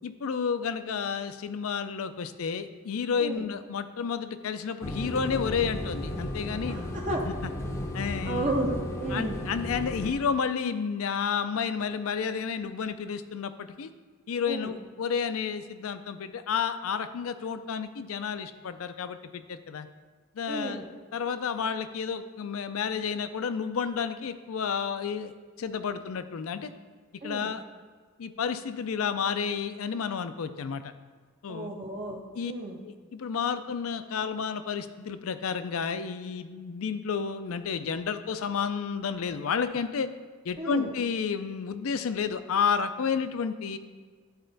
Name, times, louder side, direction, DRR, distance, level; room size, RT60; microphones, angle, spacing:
voice 1, 0.0-6.8 7.3-7.5 7.9-8.5 9.1-13.9 14.3-19.9 20.3-20.8 21.1-26.7 27.2-27.6 28.2-30.8 31.4-31.7 32.3-32.5 32.8-40.1 40.4-43.8, left 6 dB, 75° left, 11 dB, 0.4 m, -31 dB
sound 1, 4.8-10.1, left 1 dB, 15° left, 0.6 m, -34 dB
voice 2, 6.7-7.2 8.2-9.4 14.5-14.7 20.5-20.9 27.2-27.5 31.5-32.8 40.6-40.9, right 2 dB, 35° right, -1 dB, 0.6 m, -33 dB
10.5 x 4.3 x 3.9 m, 1.5 s
head